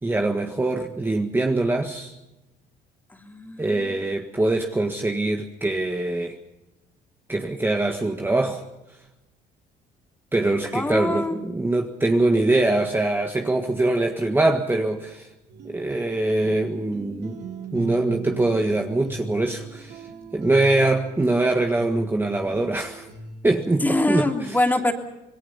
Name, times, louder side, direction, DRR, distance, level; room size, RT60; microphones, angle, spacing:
voice 1, 0.0-2.1 3.6-6.3 7.3-8.6 10.3-15.3 15.6-17.4 17.7-20.0 20.3-23.1 23.4-24.5, right 2 dB, 15° right, 3 dB, 1.7 m, -23 dB
voice 2, 3.1-4.0 10.7-11.4 23.8-24.9, left 1 dB, 10° left, 3 dB, 3.1 m, -24 dB
sound 1, 15.5-23.7, right 4 dB, 75° right, 4.2 m, -38 dB
27.0 x 21.0 x 5.6 m, 0.96 s
cardioid pair, 110°, 17 cm